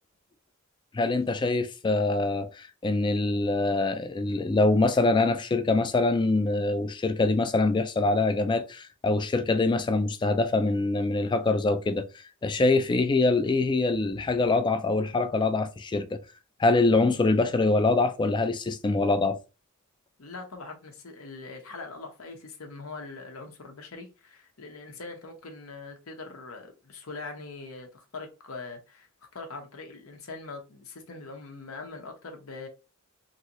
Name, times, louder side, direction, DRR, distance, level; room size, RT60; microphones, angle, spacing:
voice 1, 0.9-12.1 12.4-16.2 16.6-19.4, left 3 dB, 20° left, 0.3 m, -24 dB
voice 2, 20.2-29.1 29.3-32.7, left 3 dB, 80° left, 0.8 m, -42 dB
3.1 x 2.6 x 2.9 m
head